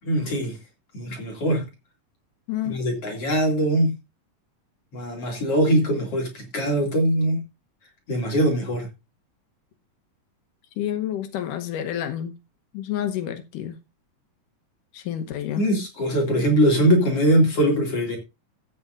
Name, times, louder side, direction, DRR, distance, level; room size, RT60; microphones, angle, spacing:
voice 1, 0.0-0.6 0.9-1.6 2.6-3.9 4.9-7.4 8.1-8.9 15.6-18.2, equal, 50° left, 3.3 m, -22 dB
voice 2, 2.5-2.8 10.8-12.3 12.7-13.8 14.9-15.7, left 11 dB, 85° left, 2.6 m, -29 dB
14.0 x 9.2 x 2.5 m
omnidirectional pair, 3.7 m